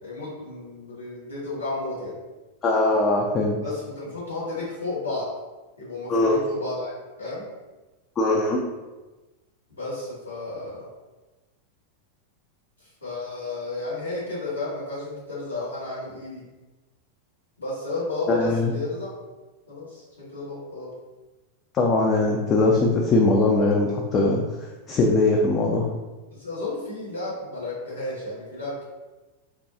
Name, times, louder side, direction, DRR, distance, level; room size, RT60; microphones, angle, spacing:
voice 1, 0.0-2.1 3.6-5.3 5.8-6.9 7.2-7.5 9.8-10.9 13.0-16.4 17.6-19.1 19.7-20.9 26.3-28.8, left 2 dB, 80° left, -9 dB, 1.4 m, -32 dB
voice 2, 2.6-3.6 6.1-6.4 8.2-8.6 18.3-18.7 21.7-24.4 24.9-25.8, left 2 dB, 30° left, -1 dB, 0.4 m, -21 dB
3.6 x 2.2 x 2.7 m, 1.1 s
figure-of-eight pair, 90°, 0 cm